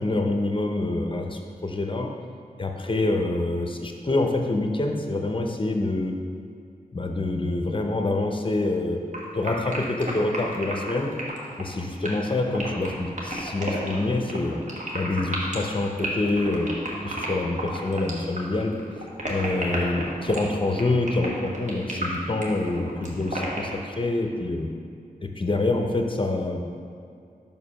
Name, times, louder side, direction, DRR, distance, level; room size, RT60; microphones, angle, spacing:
voice 1, 0.0-2.1 2.6-6.2 6.9-9.0 9.3-11.1 11.6-14.6 14.9-16.7 17.0-18.8 19.2-24.7 25.2-26.6, left 2 dB, 35° left, 3 dB, 0.7 m, -26 dB
sound 1, 9.1-23.8, right 1 dB, 50° right, 1.3 m, -32 dB
5.4 x 4.9 x 5.6 m, 2.4 s
wide cardioid pair, 85°, 16 cm